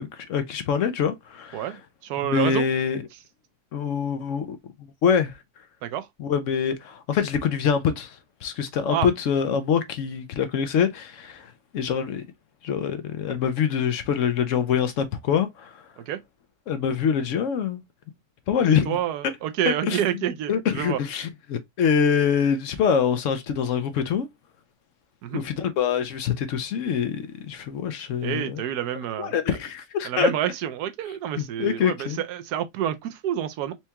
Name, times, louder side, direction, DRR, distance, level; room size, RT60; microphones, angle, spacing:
voice 1, 0.0-1.8 2.2-3.0 3.7-4.6 5.0-5.4 6.2-12.3 12.6-15.9 16.7-17.8 18.5-19.0 19.7-20.0 20.5-24.3 25.3-28.6 29.2-30.3 31.3-32.2, left 7 dB, 70° left, 0.8 m, -25 dB
voice 2, 1.5-2.7 5.8-6.1 8.9-9.1 16.0-16.2 18.9-21.0 25.2-25.4 28.2-29.3 30.0-33.8, right 10 dB, 85° right, 1.1 m, -28 dB
4.4 x 2.3 x 2.8 m
omnidirectional pair, 1.7 m